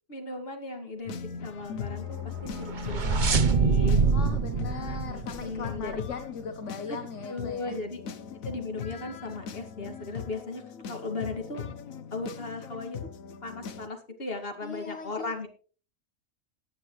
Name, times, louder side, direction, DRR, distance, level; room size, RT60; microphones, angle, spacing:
voice 1, 0.1-2.2 2.9-4.0 4.6-6.0 6.9-7.0 7.3-8.0 8.5-11.6 12.1-13.0 13.4-15.5, left 3 dB, 45° left, 4 dB, 2.4 m, -37 dB
sound 1, 1.1-13.9, left 7 dB, 80° left, 1.3 m, -39 dB
sound 2, 2.3-6.0, right 5 dB, 40° right, 0.9 m, -25 dB
voice 2, 4.1-7.8 8.3-8.4 14.6-15.3, left 6 dB, 65° left, 7 dB, 1.5 m, -39 dB
17.5 x 9.7 x 3.2 m, 0.39 s
omnidirectional pair, 1.4 m